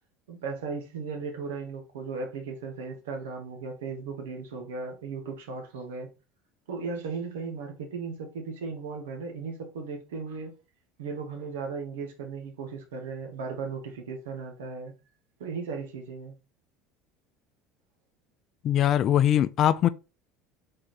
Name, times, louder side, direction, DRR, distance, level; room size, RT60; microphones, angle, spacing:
voice 1, 0.3-6.1 6.7-10.5 11.0-14.9 15.4-16.3, right 4 dB, 85° right, 1.3 m, -36 dB
voice 2, 18.6-19.9, left 11 dB, 50° left, 0.4 m, -21 dB
3.9 x 3.4 x 4.1 m
hypercardioid pair, 85°, 0 cm